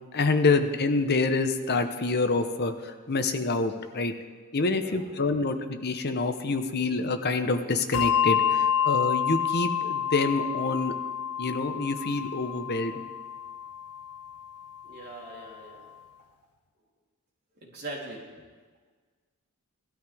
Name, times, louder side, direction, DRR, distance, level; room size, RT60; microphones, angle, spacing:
voice 1, 0.1-4.1 4.5-10.9 11.4-13.0, left 3 dB, 50° left, 7 dB, 0.9 m, -27 dB
voice 2, 4.7-5.1 14.8-15.9 17.6-18.2, right 2 dB, 50° right, -4 dB, 3.4 m, -41 dB
Bell, 7.9-14.8, left 9 dB, 65° left, 0.4 m, -28 dB
18.5 x 13.0 x 3.5 m, 1.5 s
head